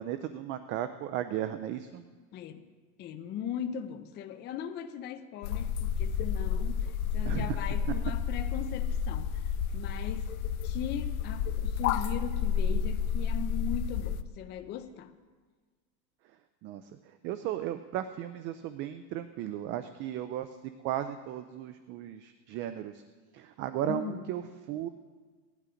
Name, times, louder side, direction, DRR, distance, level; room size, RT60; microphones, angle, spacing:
voice 1, 0.0-2.0 7.3-7.6 16.6-20.6 20.8-23.0 23.3-24.9, right 11 dB, 30° right, 11 dB, 0.4 m, -35 dB
voice 2, 2.3-2.7 3.0-9.4 9.7-15.1 23.8-24.2, left 9 dB, 25° left, 7 dB, 0.6 m, -39 dB
sound 1, 5.4-14.2, left 7 dB, 85° left, 0.8 m, -31 dB
17.5 x 11.0 x 5.0 m, 1.5 s
supercardioid pair, 155°, 41 cm